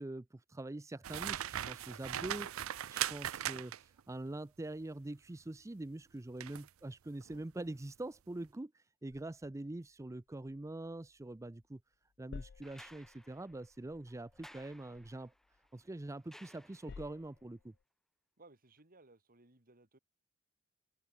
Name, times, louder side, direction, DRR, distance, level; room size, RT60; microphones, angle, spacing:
voice 1, 0.0-11.8 12.2-15.3 15.7-17.7, right 2 dB, 15° right, 0.5 m, -44 dB
sound 1, 1.0-4.0 6.4-6.7 7.2-7.4, right 11 dB, 90° right, 0.5 m, -39 dB
sound 2, 9.1-11.7 11.9-16.2 16.6-17.8, left 5 dB, 55° left, 0.4 m, -56 dB
sound 3, 12.6-17.2 18.8-18.9, equal, ahead, 2.7 m, -60 dB
voice 2, 18.4-20.0, right 2 dB, 45° right, 2.9 m, -62 dB
open air
head